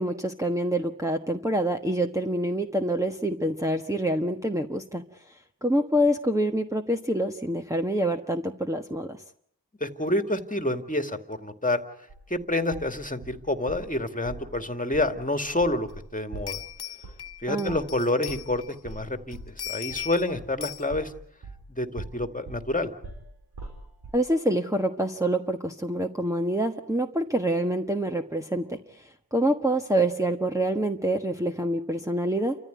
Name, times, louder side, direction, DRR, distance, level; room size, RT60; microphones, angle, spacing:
voice 1, 0.0-5.0 5.6-9.2 17.5-17.8 24.1-28.8 29.3-32.6, right 1 dB, 10° right, 1 dB, 1.4 m, -26 dB
voice 2, 9.8-11.8 12.3-16.6 17.4-19.4 19.6-21.1 21.8-22.9, left 1 dB, 20° left, 7 dB, 2.2 m, -28 dB
sound 1, 12.1-13.9 14.3-14.5 14.9-15.1 15.4-21.7 22.0-24.2, right 3 dB, 75° right, 5.2 m, -42 dB
sound 2, 15.9-16.0 16.5-18.9 19.3-20.3 20.6-20.9, left 10 dB, 70° left, 0.9 m, -38 dB
29.5 x 14.5 x 9.5 m, 0.69 s
cardioid pair, 50°, 40 cm